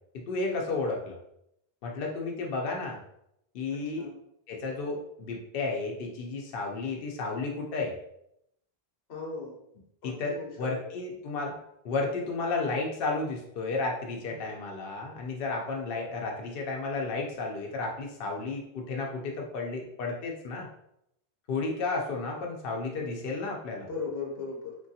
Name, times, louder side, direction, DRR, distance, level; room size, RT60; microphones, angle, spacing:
voice 1, 0.1-1.2 1.8-3.0 3.5-4.1 4.5-8.0 10.0-11.6 11.8-20.7 21.5-23.9, left 3 dB, 70° left, 0 dB, 0.7 m, -32 dB
voice 2, 3.7-4.1 9.1-9.6 10.0-11.0 14.3-14.4 23.8-24.8, left 4 dB, 90° left, -1 dB, 1.1 m, -38 dB
3.1 x 2.2 x 2.7 m, 0.77 s
omnidirectional pair, 1.0 m